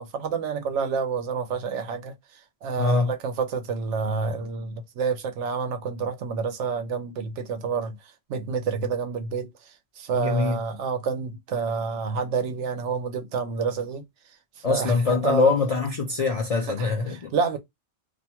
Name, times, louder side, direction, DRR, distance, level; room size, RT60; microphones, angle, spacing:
voice 1, 0.0-15.5 16.6-17.6, right 5 dB, 85° right, 0.9 m, -29 dB
voice 2, 2.8-3.1 10.1-10.6 14.6-17.3, left 4 dB, 60° left, 0.4 m, -23 dB
2.5 x 2.2 x 2.8 m
omnidirectional pair, 1.2 m